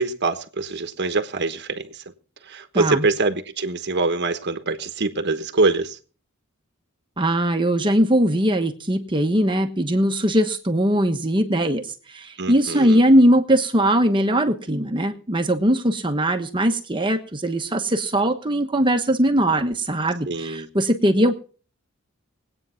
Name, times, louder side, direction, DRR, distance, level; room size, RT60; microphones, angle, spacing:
voice 1, 0.0-2.0 2.4-6.0 12.4-13.0 20.3-20.7, right 3 dB, 55° right, 1.3 m, -24 dB
voice 2, 2.7-3.1 7.2-21.3, right 1 dB, 25° right, 1.2 m, -20 dB
21.0 x 8.9 x 5.8 m
head